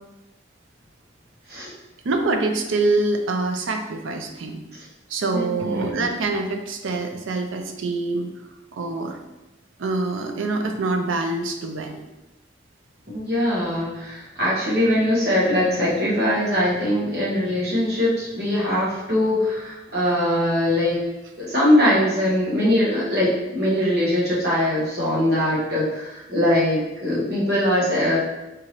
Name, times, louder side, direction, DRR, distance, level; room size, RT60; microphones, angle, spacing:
voice 1, 2.0-4.6 5.1-8.3 8.7-9.2 9.8-12.0, right 3 dB, 90° right, 4 dB, 0.5 m, -25 dB
voice 2, 5.3-6.0 13.1-21.0 21.4-28.2, left 1 dB, 55° right, -7 dB, 1.2 m, -21 dB
3.6 x 2.9 x 2.9 m, 0.99 s
head